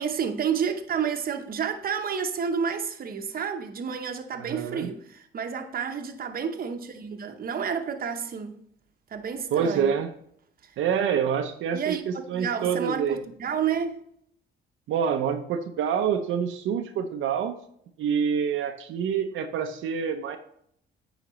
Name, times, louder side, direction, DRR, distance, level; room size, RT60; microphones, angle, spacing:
voice 1, 0.0-8.6 9.1-10.0 11.7-14.0, right 7 dB, 45° right, 0.9 m, -30 dB
voice 2, 4.4-4.9 9.5-10.1 10.8-13.2 14.9-17.5 18.0-20.4, right 7 dB, 80° right, 0.6 m, -27 dB
8.9 x 5.0 x 3.1 m
cardioid pair, 90°, 20 cm